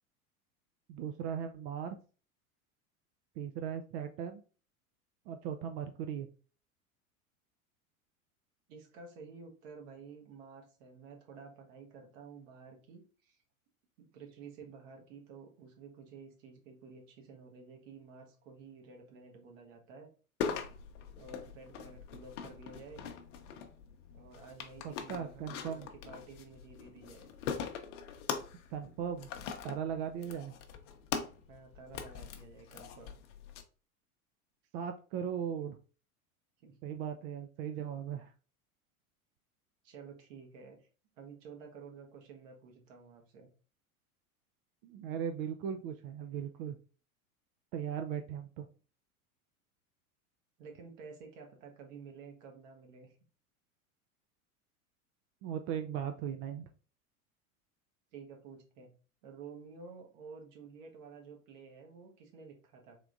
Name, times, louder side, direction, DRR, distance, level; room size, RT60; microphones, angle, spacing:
voice 1, 0.9-2.0 3.4-4.4 5.3-6.3 24.8-25.9 28.7-29.3 29.6-30.5 34.7-35.8 36.8-38.3 44.8-46.8 47.7-48.7 55.4-56.7, right 8 dB, 45° right, 6 dB, 0.4 m, -38 dB
voice 2, 8.7-13.4 14.0-20.1 21.2-23.0 24.1-27.3 31.5-33.2 36.6-36.9 39.8-40.9 41.2-43.5 50.6-53.1 58.1-58.9 59.2-63.0, right 5 dB, 60° right, 2 dB, 1.3 m, -52 dB
sound 1, 20.4-33.6, left 7 dB, 60° left, 0.7 m, -42 dB
3.7 x 3.3 x 2.5 m, 0.37 s
hypercardioid pair, 85°, 43 cm